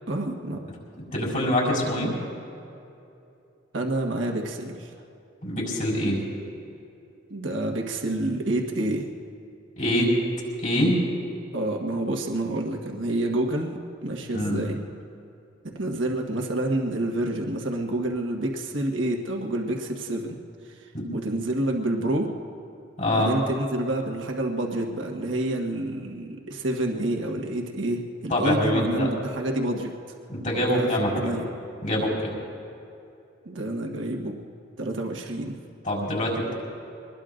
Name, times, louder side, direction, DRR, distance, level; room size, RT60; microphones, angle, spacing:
voice 1, 0.1-0.6 3.7-4.9 7.3-9.1 11.5-14.8 15.7-20.3 20.8-22.3 23.1-29.9 30.6-30.9 31.1-31.4 33.4-34.4 34.8-35.6, right 1 dB, 85° right, 1 dB, 1.5 m, -28 dB
voice 2, 0.9-2.1 5.4-6.2 9.8-10.2 10.6-11.0 14.3-14.6 20.9-21.1 23.0-23.3 28.3-29.1 30.3-31.3 31.8-32.3 35.8-36.5, left 1 dB, 45° left, -4 dB, 4.7 m, -24 dB
25.0 x 20.5 x 2.6 m, 2.7 s
head